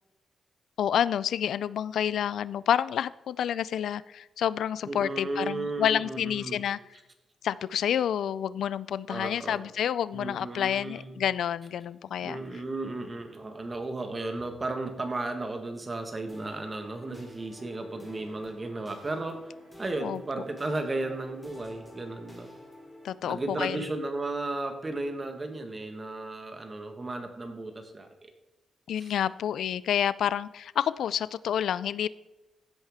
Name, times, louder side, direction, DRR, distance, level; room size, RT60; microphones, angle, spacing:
voice 1, 0.8-6.8 7.4-12.4 20.0-20.2 23.0-23.8 28.9-32.1, left 9 dB, 80° left, 18 dB, 0.3 m, -29 dB
voice 2, 4.8-6.6 9.1-9.6 10.1-11.2 12.2-19.5 19.8-22.5 23.2-28.3 29.0-29.1, right 2 dB, 25° right, 5 dB, 1.6 m, -34 dB
sound 1, 16.3-23.1, left 1 dB, ahead, 2.8 m, -49 dB
15.5 x 8.9 x 3.6 m, 0.98 s
wide cardioid pair, 140°, 0 cm